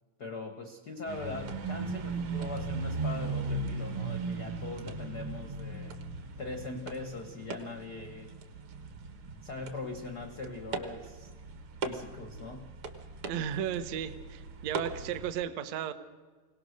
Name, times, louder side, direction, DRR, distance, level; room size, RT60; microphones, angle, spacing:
voice 1, 0.2-6.0 6.4-8.3 9.4-11.3 11.8-12.7, left 3 dB, 75° left, 6 dB, 0.9 m, -41 dB
sound 1, 1.1-15.3, right 3 dB, 50° right, 1.7 m, -38 dB
voice 2, 13.3-15.9, right 9 dB, 65° right, 11 dB, 1.8 m, -34 dB
23.5 x 18.0 x 6.6 m, 1.4 s
omnidirectional pair, 4.0 m